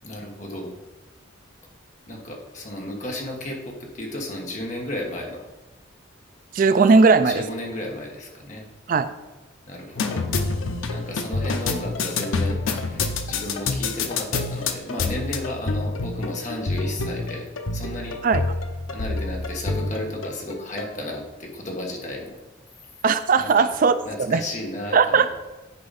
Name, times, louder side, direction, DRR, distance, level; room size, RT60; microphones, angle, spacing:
voice 1, 0.0-0.7 2.1-5.5 6.9-8.6 9.7-10.3 10.9-17.5 17.7-18.2 18.9-22.4 23.4-23.6 24.0-25.3, left 1 dB, 35° left, 0 dB, 1.4 m, -33 dB
voice 2, 6.5-7.4 8.9-9.1 18.2-18.4 23.0-24.0 24.3-24.4 24.9-25.3, right 4 dB, 45° right, 11 dB, 0.3 m, -17 dB
sound 1, 9.9-20.9, left 3 dB, 90° left, 0.7 m, -27 dB
9.6 x 4.8 x 4.1 m, 1.1 s
head